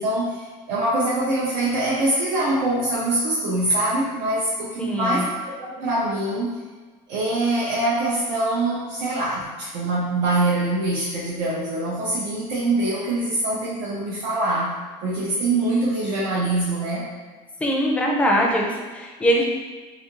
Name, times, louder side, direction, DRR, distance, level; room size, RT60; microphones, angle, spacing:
voice 1, 0.0-6.6 7.1-14.7 15.0-17.1, right 2 dB, 90° right, -6 dB, 0.6 m, -24 dB
voice 2, 4.8-5.3 17.6-19.4, equal, 10° left, -1 dB, 0.4 m, -22 dB
2.6 x 2.4 x 2.9 m, 1.3 s
cardioid pair, 160°, 12 cm